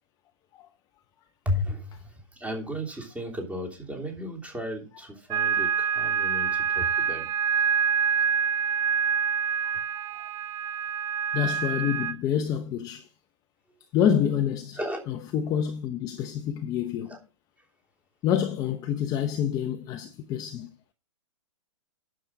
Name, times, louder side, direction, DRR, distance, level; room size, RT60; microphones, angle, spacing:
voice 1, 1.4-7.3 14.8-15.0 17.1-17.2, left 1 dB, 10° right, 3.1 m, -34 dB
sound 1, 5.3-12.1, right 7 dB, 25° right, 0.7 m, -26 dB
voice 2, 11.3-13.1 13.9-14.8 15.1-17.2 18.2-20.7, left 9 dB, 20° left, 0.9 m, -27 dB
10.0 x 7.5 x 4.7 m
hypercardioid pair, 145°, 17 cm